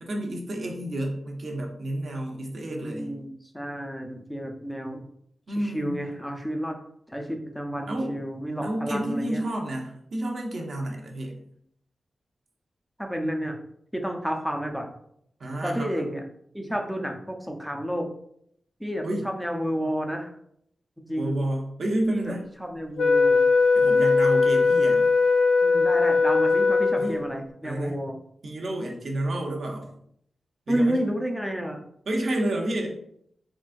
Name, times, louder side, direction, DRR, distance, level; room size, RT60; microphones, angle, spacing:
voice 1, 0.0-3.2 5.5-6.0 7.9-8.2 8.6-11.4 15.4-16.0 19.0-19.2 21.2-22.4 23.7-25.1 27.0-27.2 27.6-28.0 28.4-29.9 30.7-31.0 32.1-32.9, right 1 dB, 60° right, 1 dB, 0.7 m, -30 dB
voice 2, 2.7-5.0 5.5-6.8 7.1-9.4 13.0-13.6 13.9-14.9 15.6-16.2 16.5-18.1 18.8-20.3 21.0-21.3 22.1-22.3 22.6-23.4 25.6-28.2 30.7-31.8, equal, ahead, 2 dB, 0.5 m, -30 dB
Wind instrument woodwind instrument, 23.0-27.4, left 4 dB, 85° left, 0.4 m, -20 dB
3.7 x 3.5 x 2.5 m, 0.71 s
wide cardioid pair, 140°, 0 cm